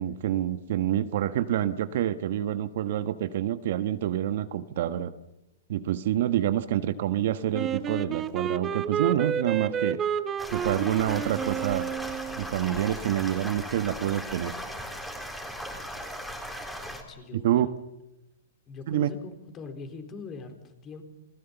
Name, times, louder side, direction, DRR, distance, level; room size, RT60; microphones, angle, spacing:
voice 1, 0.0-5.1 5.7-10.0 10.5-11.9 12.4-14.5 17.3-17.7 18.9-19.1, right 11 dB, 60° right, 11 dB, 1.3 m, -27 dB
Wind instrument woodwind instrument, 7.5-12.6, right 8 dB, 20° right, 1.1 m, -30 dB
sound 1, 10.4-17.0, equal, 5° left, 3.8 m, -38 dB
voice 2, 16.9-17.6 18.7-21.0, left 4 dB, 25° left, 6 dB, 4.0 m, -42 dB
29.0 x 20.0 x 7.1 m, 0.92 s
hypercardioid pair, 135°, 0 cm